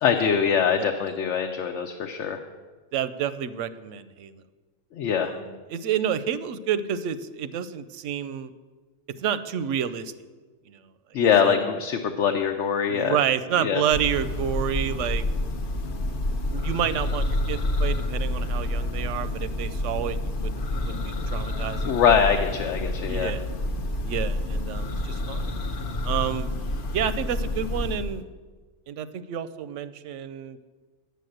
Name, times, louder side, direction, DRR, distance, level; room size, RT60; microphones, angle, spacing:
voice 1, 0.0-2.4 4.9-5.3 11.1-13.2 13.6-13.8 21.8-23.3, left 7 dB, 80° left, 4 dB, 1.0 m, -23 dB
voice 2, 2.9-4.3 5.2-8.5 9.2-10.1 10.7-10.8 11.4-11.7 12.9-15.2 16.5-22.0 23.1-23.4 24.1-25.5 26.0-26.5 26.9-28.3 28.9-30.6, right 9 dB, 90° right, 13 dB, 0.9 m, -29 dB
Church bell, 13.9-28.2, left 1 dB, 50° left, 0.8 m, -28 dB
9.3 x 6.9 x 7.8 m, 1.4 s
omnidirectional pair, 1.2 m